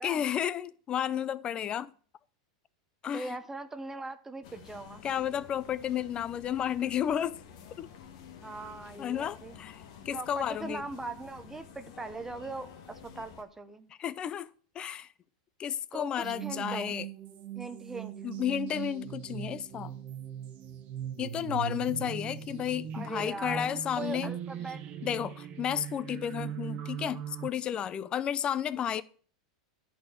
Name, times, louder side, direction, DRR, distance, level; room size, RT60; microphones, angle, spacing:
voice 1, 0.0-1.9 3.0-3.4 5.0-7.4 7.8-7.9 9.0-10.8 14.0-14.5 14.7-15.1 15.6-17.1 18.2-19.9 21.2-24.3 25.0-29.0, left 9 dB, 30° left, 0.5 m, -32 dB
voice 2, 3.1-5.0 8.4-9.6 10.1-13.9 15.9-16.9 17.5-18.1 22.9-24.8, right 3 dB, 10° right, 0.7 m, -40 dB
sound 1, 4.4-13.4, left 8 dB, 65° left, 1.4 m, -50 dB
sound 2, 16.2-27.5, right 9 dB, 45° right, 1.1 m, -40 dB
11.0 x 4.3 x 6.2 m
supercardioid pair, 125°, 3 cm